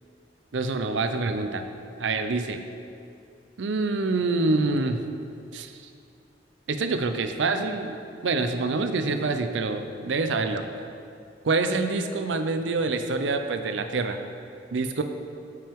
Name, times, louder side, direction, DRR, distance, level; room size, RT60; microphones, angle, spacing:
voice 1, 0.5-1.6 2.0-2.6 3.6-5.0 5.5-5.7 6.7-8.0 8.2-10.6 11.4-14.2 14.7-15.0, right 3 dB, 90° right, 7 dB, 0.5 m, -26 dB
8.9 x 6.1 x 3.6 m, 2.6 s
head